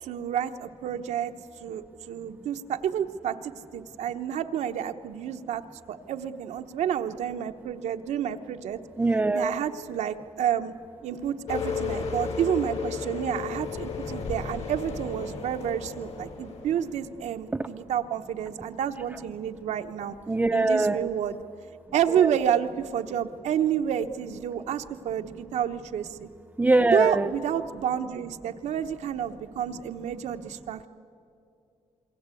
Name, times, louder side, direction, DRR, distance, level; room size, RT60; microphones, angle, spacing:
voice 1, 0.0-1.3 1.6-8.8 9.3-10.7 11.0-20.1 20.5-21.4 21.9-26.3 26.9-30.9, right 9 dB, 85° right, 6 dB, 1.0 m, -29 dB
voice 2, 9.0-9.6 20.3-21.1 22.1-22.3 26.6-27.3, right 2 dB, 15° right, 5 dB, 0.5 m, -22 dB
sound 1, 11.5-17.1, left 5 dB, 70° left, 3.7 m, -34 dB
27.5 x 22.5 x 8.4 m, 2.6 s
cardioid pair, 150°, 12 cm